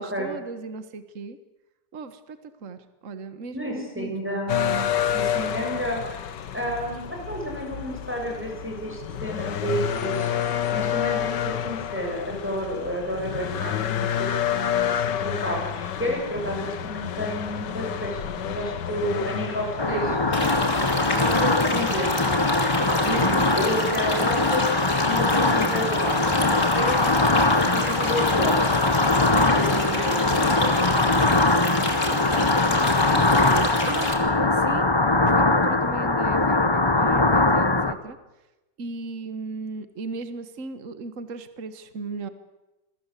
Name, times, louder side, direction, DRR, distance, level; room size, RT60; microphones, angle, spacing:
voice 1, 0.0-1.4 1.9-4.5 19.9-20.2 23.0-23.6 29.7-30.0 32.0-34.9 35.2-38.2 38.8-42.3, right 4 dB, 50° right, 11 dB, 1.8 m, -36 dB
voice 2, 3.5-4.9 5.1-6.2 6.5-10.4 10.7-20.3 21.1-22.4 22.9-24.7 25.0-27.2 27.7-28.6 29.3-31.0, equal, 5° right, 0 dB, 7.5 m, -31 dB
sound 1, 4.5-21.3, left 9 dB, 80° left, 1.8 m, -29 dB
sound 2, 19.8-37.9, left 2 dB, 15° left, 1.1 m, -21 dB
sound 3, 20.3-34.1, left 2 dB, 45° left, 3.8 m, -31 dB
27.5 x 21.5 x 8.3 m, 1.0 s
omnidirectional pair, 1.8 m